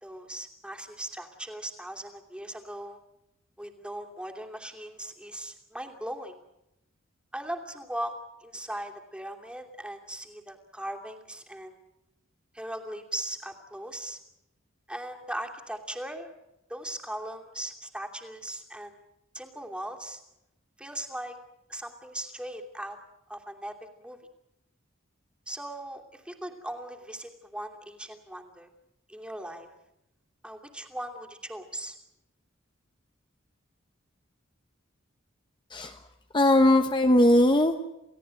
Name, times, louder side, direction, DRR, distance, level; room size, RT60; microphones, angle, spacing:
voice 1, 0.0-3.0 3.6-6.4 7.3-11.8 12.5-14.2 14.9-16.3 16.7-18.9 19.3-20.2 20.8-21.4 21.7-23.0 23.3-24.2 25.5-28.7 29.1-29.7 30.4-32.0, right 1 dB, 5° right, 2 dB, 2.8 m, -39 dB
voice 2, 35.7-36.1 36.3-37.8, left 1 dB, 25° left, 6 dB, 1.1 m, -20 dB
29.0 x 17.5 x 9.0 m, 0.89 s
head